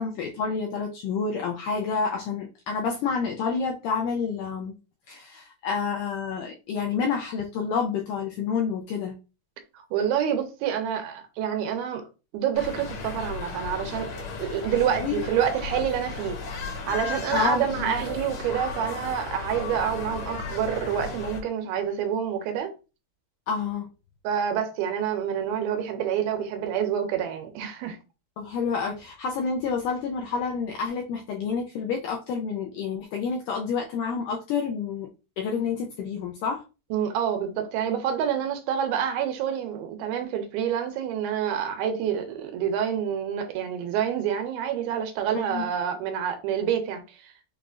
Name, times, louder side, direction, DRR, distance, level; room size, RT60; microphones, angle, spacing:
voice 1, 0.0-4.7 5.1-9.2 15.0-15.2 17.3-17.9 23.5-23.9 28.4-35.1 35.4-36.6 45.5-45.7, left 5 dB, 85° left, 1.8 m, -29 dB
voice 2, 9.9-12.1 12.3-22.7 24.2-28.0 36.9-47.3, right 9 dB, 90° right, 2.5 m, -28 dB
sound 1, 12.5-21.4, left 4 dB, 65° left, 1.8 m, -35 dB
6.5 x 2.4 x 2.4 m
omnidirectional pair, 4.3 m